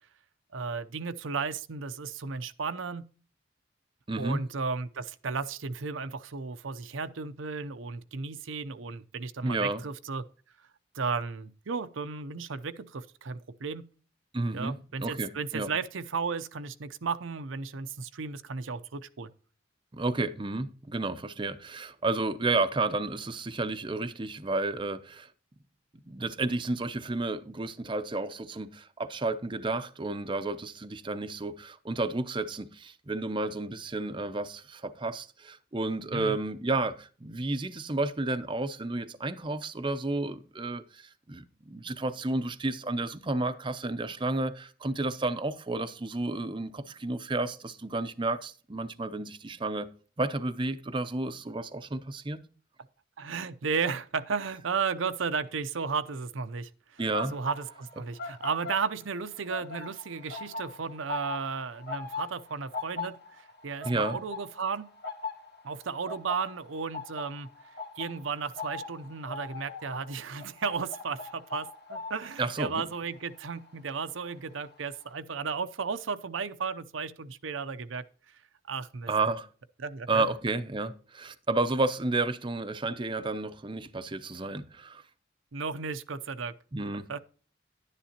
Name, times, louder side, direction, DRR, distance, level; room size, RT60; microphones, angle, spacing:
voice 1, 0.5-3.0 4.2-10.2 10.9-13.8 14.5-19.3 36.1-36.4 53.2-57.0 57.3-64.9 65.6-67.5 68.0-78.0 78.7-79.1 79.8-80.2 85.5-86.5 87.1-87.2, right 5 dB, 85° right, 0.7 m, -34 dB
voice 2, 4.1-4.4 9.4-9.8 14.3-14.7 15.0-15.7 19.9-25.3 26.1-49.9 50.2-52.4 57.0-57.3 63.8-64.2 72.4-72.8 79.1-79.5 80.1-85.0 86.7-87.2, right 2 dB, 25° right, 0.6 m, -31 dB
sound 1, 57.0-59.2 59.4-74.3 74.6-74.9, left 3 dB, 55° left, 2.0 m, -40 dB
11.5 x 10.0 x 2.9 m
head